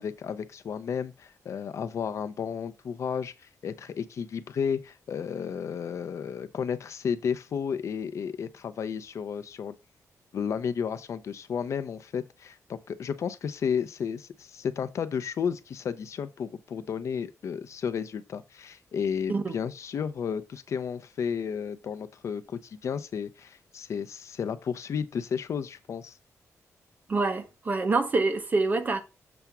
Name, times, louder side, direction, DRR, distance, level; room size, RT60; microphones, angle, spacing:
voice 1, 0.0-9.8 10.3-26.2, left 7 dB, 60° left, 0.6 m, -32 dB
voice 2, 27.1-29.0, right 3 dB, 30° right, 1.0 m, -26 dB
7.0 x 3.4 x 6.0 m
wide cardioid pair, 155°, 6 cm